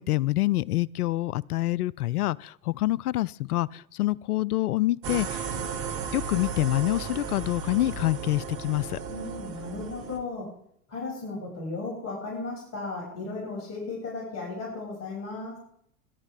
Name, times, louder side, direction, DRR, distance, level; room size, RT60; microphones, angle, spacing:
voice 1, 0.0-5.5 6.1-9.0, left 17 dB, 75° left, 24 dB, 0.5 m, -26 dB
sound 1, 5.0-10.2, right 6 dB, 50° right, 2.3 m, -35 dB
voice 2, 9.1-10.5 10.9-15.6, left 3 dB, 35° left, -2 dB, 6.5 m, -35 dB
22.0 x 11.0 x 3.5 m, 0.70 s
figure-of-eight pair, 90°, 45 cm